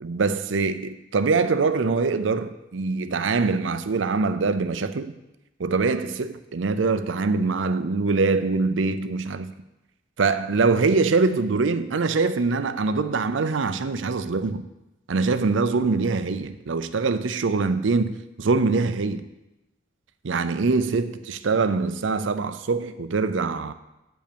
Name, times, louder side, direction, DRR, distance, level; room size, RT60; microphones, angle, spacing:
voice 1, 0.0-5.1 5.6-9.5 10.2-14.6 15.1-19.2 20.2-23.7, right 4 dB, 85° right, 0.6 m, -23 dB
8.8 x 5.5 x 6.9 m
head